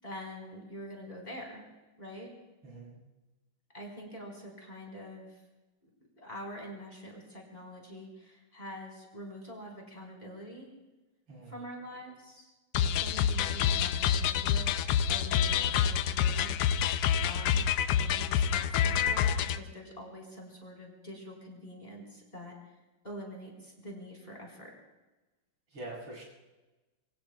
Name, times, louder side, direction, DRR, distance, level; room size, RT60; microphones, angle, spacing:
voice 1, 0.0-1.7 2.0-2.3 3.7-5.4 6.2-10.7 11.5-12.5 12.8-14.7 15.1-16.5 17.2-22.6 23.0-24.7, equal, 20° left, -1 dB, 4.3 m, -45 dB
voice 2, 2.6-3.0 11.3-11.6 25.7-26.2, right 2 dB, 85° right, -5 dB, 7.8 m, -44 dB
sound 1, 12.7-19.6, left 8 dB, 90° left, 1.6 m, -27 dB
26.0 x 24.0 x 2.3 m, 1.1 s
omnidirectional pair, 2.4 m